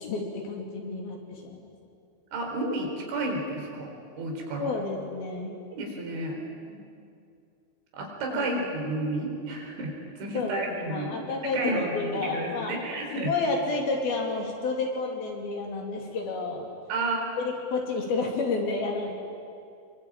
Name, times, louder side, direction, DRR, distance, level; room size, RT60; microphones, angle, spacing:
voice 1, 0.0-1.7 4.6-5.6 8.3-8.6 10.3-12.8 13.1-16.7 17.4-19.2, left 3 dB, 55° left, 1 dB, 4.6 m, -30 dB
voice 2, 2.3-3.9 4.2-4.7 5.7-6.4 6.7-6.8 7.9-11.2 11.5-13.3 16.9-17.3, right 2 dB, 80° right, 1 dB, 6.5 m, -31 dB
25.5 x 23.0 x 8.9 m, 2.4 s
omnidirectional pair, 5.2 m